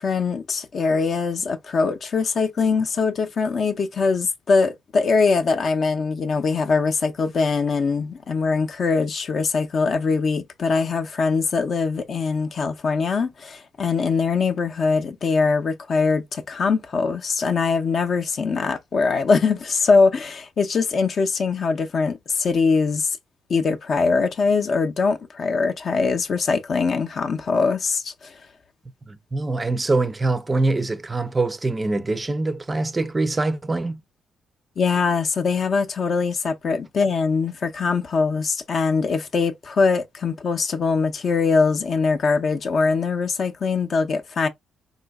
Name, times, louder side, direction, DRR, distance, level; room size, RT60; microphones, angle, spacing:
voice 1, 0.0-23.2 23.5-28.3 34.8-44.5, left 4 dB, 50° left, 0.5 m, -22 dB
voice 2, 29.1-34.0, right 2 dB, 20° right, 0.4 m, -24 dB
3.8 x 2.4 x 2.3 m
cardioid pair, 90°, 0 cm